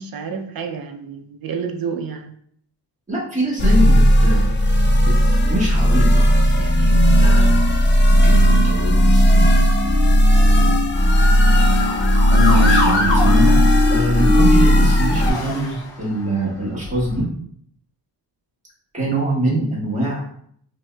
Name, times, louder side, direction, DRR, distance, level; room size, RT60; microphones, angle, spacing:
voice 1, 0.0-2.3, right 6 dB, 55° right, 5 dB, 0.6 m, -29 dB
voice 2, 3.1-4.4 5.0-5.1 5.4-7.6 8.1-9.6 10.4-10.8 11.2-11.4 12.3-13.5 13.9-17.3 18.9-20.4, right 1 dB, 15° right, -7 dB, 1.5 m, -24 dB
sound 1, 3.6-15.3, equal, 30° left, 0.3 m, -15 dB
Motor vehicle (road) / Siren, 10.9-16.2 16.8-17.2, left 2 dB, 80° left, 0.9 m, -26 dB
5.2 x 2.7 x 2.3 m, 0.63 s
wide cardioid pair, 155°, 44 cm